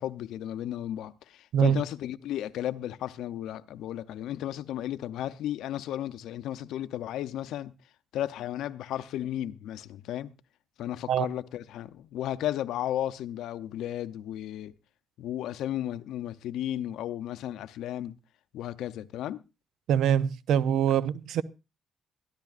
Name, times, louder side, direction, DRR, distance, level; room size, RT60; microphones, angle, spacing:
voice 1, 0.0-7.7 8.1-10.3 10.8-14.7 15.2-18.2 18.5-19.4, left 12 dB, 85° left, 0.7 m, -34 dB
voice 2, 19.9-21.4, right 9 dB, 80° right, 0.6 m, -24 dB
21.5 x 13.5 x 2.5 m
cardioid pair, 90°, 0 cm